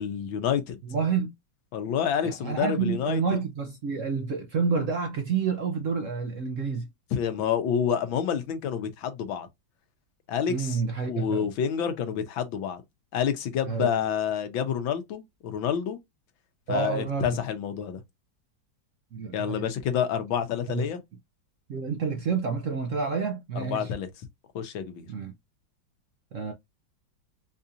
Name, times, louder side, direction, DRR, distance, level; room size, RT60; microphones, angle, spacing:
voice 1, 0.0-0.8 1.7-3.2 7.1-9.5 10.3-10.8 11.1-12.8 13.1-16.0 16.7-18.0 19.3-21.0 23.6-24.1 24.6-25.1, left 8 dB, 90° left, 1.6 m, -28 dB
voice 2, 0.8-1.3 2.2-6.9 10.5-11.5 13.6-13.9 16.7-17.4 19.1-19.7 20.7-20.9 21.7-23.9 25.1-25.3 26.3-26.5, right 5 dB, 65° right, 0.8 m, -29 dB
4.7 x 2.7 x 2.4 m
omnidirectional pair, 2.1 m